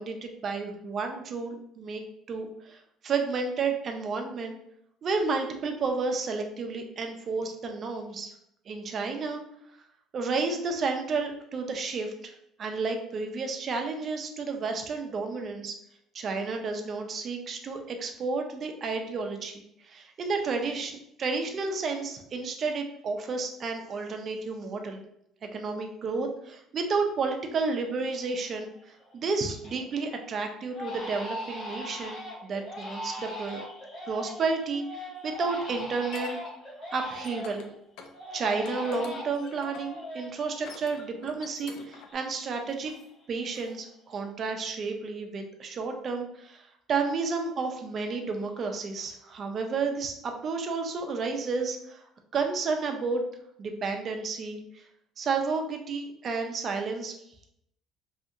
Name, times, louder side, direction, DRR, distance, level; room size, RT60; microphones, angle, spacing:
voice 1, 0.0-2.0 2.3-4.5 5.0-8.3 8.7-9.4 10.1-12.3 12.6-15.7 16.1-25.0 25.5-33.6 34.1-36.4 36.9-37.7 38.3-42.9 43.3-52.0 52.3-53.2 53.6-54.8 55.2-57.1, right 4 dB, 30° right, 4 dB, 0.4 m, -31 dB
Crying sobbing, 28.1-28.6 29.0-29.8 30.1-30.3 30.7-37.7 38.1-41.5 41.7-43.3 43.5-44.1, left 1 dB, 35° left, 0.8 m, -40 dB
Barn Door Lock and Latch Fiddling, 35.3-36.3 36.9-37.7 38.0-38.1 38.5-40.0 40.5-42.1, left 5 dB, 65° left, 0.4 m, -46 dB
2.7 x 2.7 x 2.4 m, 0.77 s
cardioid pair, 170°, 0 cm